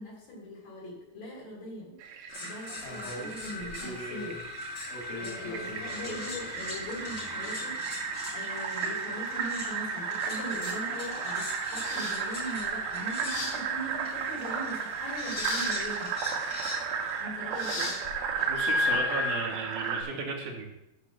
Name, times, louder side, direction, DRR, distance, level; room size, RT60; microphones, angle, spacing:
voice 1, 0.0-2.0 2.4-4.4 5.2-16.1 17.2-17.9, equal, 60° left, -4 dB, 4.5 m, -41 dB
Fill (with liquid), 2.0-20.0, right 6 dB, 75° right, 2.8 m, -35 dB
sound 1, 2.3-17.2 18.5-19.4, left 3 dB, 30° left, 2.5 m, -37 dB
sound 2, 2.8-19.0, left 2 dB, 80° left, 4.5 m, -42 dB
voice 2, 18.5-20.7, right 3 dB, 60° right, -1 dB, 2.7 m, -35 dB
12.0 x 4.1 x 6.4 m, 0.89 s
omnidirectional pair, 4.6 m